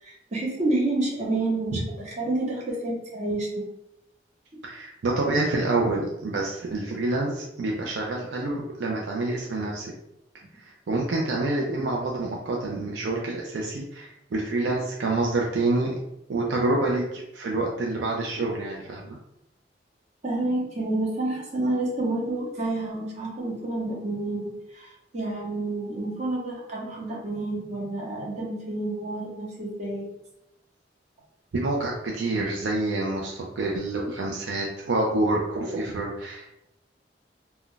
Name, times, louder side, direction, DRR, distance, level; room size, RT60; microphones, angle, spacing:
voice 1, 0.0-3.5 4.5-4.6 20.2-30.1, right 2 dB, 40° right, -3 dB, 0.9 m, -29 dB
voice 2, 4.6-9.9 10.5-15.9 16.3-19.2 31.5-36.6, right 2 dB, 75° right, -1 dB, 0.4 m, -27 dB
2.3 x 2.1 x 3.8 m, 0.87 s
head